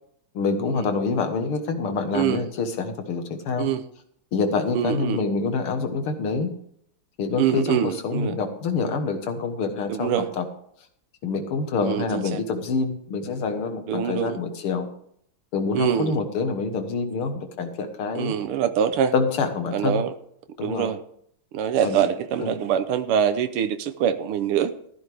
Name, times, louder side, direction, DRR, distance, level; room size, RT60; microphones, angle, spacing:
voice 1, 0.4-3.7 4.3-6.5 7.2-10.4 11.2-14.9 15.5-18.3 19.1-20.0 20.6-20.9 21.8-22.0 22.4-22.5, left 4 dB, 85° left, 7 dB, 2.3 m, -26 dB
voice 2, 4.7-5.2 7.4-8.3 9.9-10.3 11.8-12.4 13.9-14.4 15.7-16.2 18.2-19.1 19.7-20.1 20.6-21.0 21.5-24.7, right 9 dB, 90° right, 9 dB, 1.7 m, -24 dB
14.5 x 12.0 x 3.4 m, 0.67 s
omnidirectional pair, 2.3 m